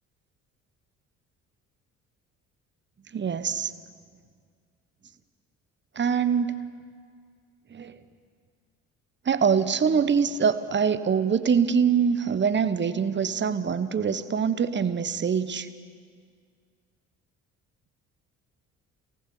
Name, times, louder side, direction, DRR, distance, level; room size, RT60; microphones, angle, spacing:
voice 1, 3.1-3.7 6.0-6.6 7.7-7.9 9.2-15.7, right 6 dB, 25° right, 12 dB, 1.1 m, -24 dB
26.0 x 18.0 x 7.0 m, 2.1 s
figure-of-eight pair, 50°, 41 cm